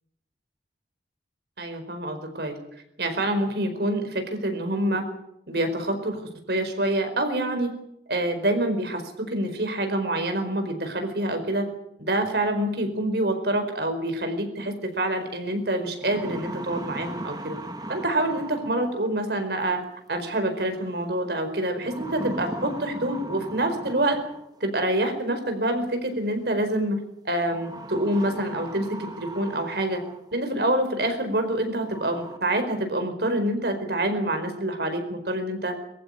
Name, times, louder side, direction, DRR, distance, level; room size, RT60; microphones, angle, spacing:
voice 1, 1.6-2.6 3.0-5.1 5.5-7.7 8.1-11.7 12.0-17.6 17.9-19.8 20.1-24.2 24.6-27.0 27.2-30.0 30.3-35.7, right 1 dB, 65° right, 7 dB, 4.7 m, -26 dB
sound 1, 15.2-15.3 15.8-19.2 20.6-21.0 21.8-24.6 25.9-26.0 27.5-30.4 30.8-30.9 31.5-31.6 31.8-32.4, right 1 dB, 20° right, 1.7 m, -38 dB
23.0 x 15.0 x 9.8 m, 0.81 s
head